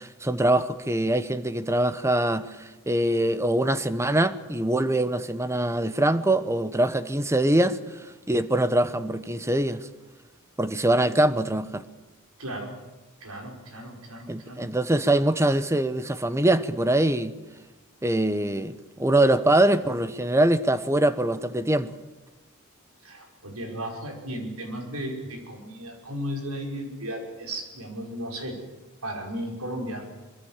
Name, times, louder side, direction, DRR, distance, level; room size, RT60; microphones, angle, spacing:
voice 1, 0.0-7.8 8.3-9.9 10.6-11.9 14.3-17.4 18.0-21.9, right 1 dB, 15° right, 0.9 m, -23 dB
voice 2, 12.4-12.8 13.2-14.7 23.0-28.6 29.0-30.1, equal, 90° right, 5.4 m, -35 dB
24.0 x 23.0 x 7.4 m
head